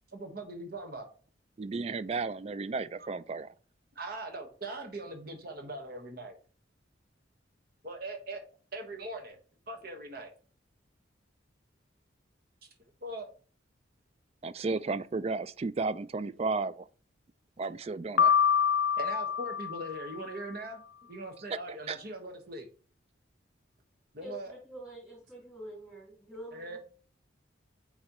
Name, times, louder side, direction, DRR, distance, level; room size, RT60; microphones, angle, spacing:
voice 1, 0.1-1.1 3.0-3.1 3.9-6.4 7.8-8.4 8.7-9.4 9.7-10.3 13.0-13.3 19.0-22.7 24.1-24.6 26.5-26.8, right 2 dB, 50° right, 1.4 m, -41 dB
voice 2, 1.6-3.5 14.4-16.8 17.6-18.4 21.9-22.0, right 3 dB, 30° right, 0.3 m, -33 dB
Piano, 18.2-20.3, left 7 dB, 75° left, 0.4 m, -26 dB
voice 3, 24.2-26.8, equal, 5° right, 3.2 m, -46 dB
8.7 x 4.1 x 3.0 m
head